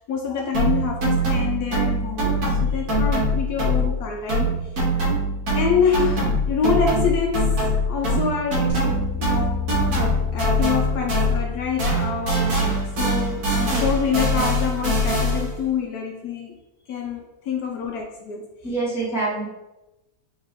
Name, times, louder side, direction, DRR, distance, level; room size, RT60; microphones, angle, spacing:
voice 1, 0.0-4.7 5.5-9.7 10.3-16.6 16.9-18.5, left 6 dB, 70° left, 1 dB, 1.0 m, -26 dB
sound 1, 0.5-4.0 4.3-11.5 11.8-15.6, equal, 70° right, 1.7 m, -23 dB
sound 2, 8.7-13.9, left 9 dB, 40° left, 1.2 m, -33 dB
voice 2, 18.6-19.5, right 3 dB, ahead, -8 dB, 1.3 m, -27 dB
3.7 x 3.5 x 3.6 m, 0.98 s
omnidirectional pair, 1.7 m